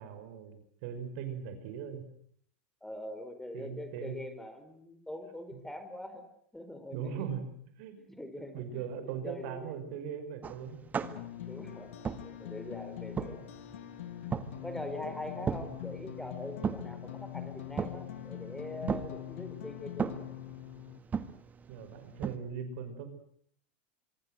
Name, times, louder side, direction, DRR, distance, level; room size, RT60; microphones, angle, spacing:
voice 1, 0.0-2.0 3.5-4.2 6.9-7.4 7.8-8.0 8.5-10.8 15.4-15.5 21.7-23.1, right 7 dB, 65° right, 9 dB, 5.7 m, -39 dB
voice 2, 2.8-6.3 6.5-7.3 8.0-9.7 11.5-11.9 12.2-13.8 14.6-20.1, left 1 dB, 5° left, 9 dB, 4.6 m, -43 dB
sound 1, 10.4-22.4, right 6 dB, 25° right, 1.8 m, -39 dB
sound 2, 11.0-21.0, left 12 dB, 80° left, 1.5 m, -43 dB
25.5 x 22.5 x 8.0 m, 0.64 s
hypercardioid pair, 110°, 7 cm